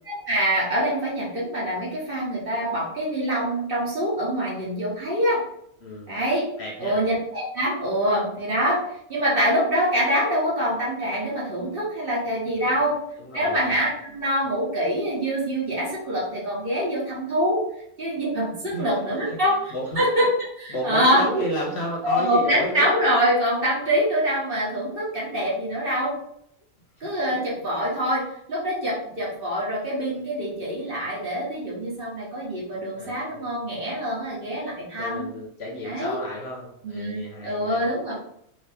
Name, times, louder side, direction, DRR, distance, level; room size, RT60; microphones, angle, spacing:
voice 1, 0.1-5.4 6.1-6.4 6.8-8.8 9.1-13.0 13.3-17.6 18.0-19.6 20.0-20.3 20.6-21.2 22.0-26.1 27.0-28.2 28.5-35.2 35.8-36.2 36.8-38.1, equal, 45° right, -5 dB, 1.2 m, -25 dB
voice 2, 5.8-6.2 6.6-7.0 12.6-12.9 13.2-13.7 18.7-18.9 19.2-19.4 19.7-20.2 20.7-23.1 27.0-27.4 32.5-33.5 34.4-37.9, equal, 60° left, -2 dB, 0.8 m, -33 dB
2.8 x 2.7 x 3.4 m, 0.71 s
omnidirectional pair, 1.4 m